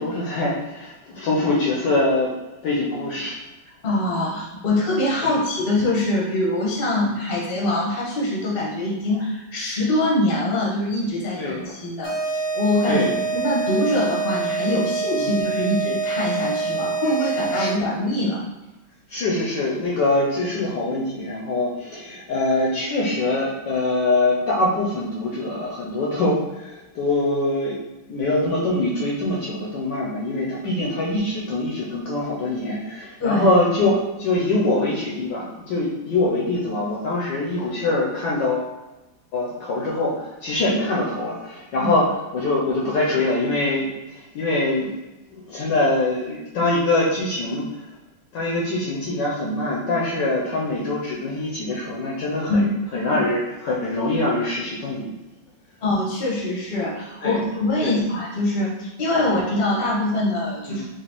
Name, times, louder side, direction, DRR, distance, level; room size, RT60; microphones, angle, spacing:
voice 1, 0.0-2.3 2.6-3.4 5.2-5.4 6.9-7.1 11.3-11.7 12.9-13.1 15.2-15.3 17.5-17.7 19.1-27.7 28.1-38.7 39.3-42.1 42.3-44.9 45.3-47.9 48.3-55.1 57.2-57.4 57.8-58.0 59.2-59.3 60.7-60.9, left 2 dB, 70° left, -4 dB, 1.2 m, -24 dB
voice 2, 3.8-13.0 13.3-18.4 33.2-33.5 41.8-41.9 52.5-52.7 55.8-60.8, left 1 dB, 40° left, -4 dB, 0.9 m, -23 dB
sound 1, 12.0-18.0, right 4 dB, 20° left, 0.3 m, -26 dB
4.8 x 2.7 x 3.0 m, 1.0 s
omnidirectional pair, 2.3 m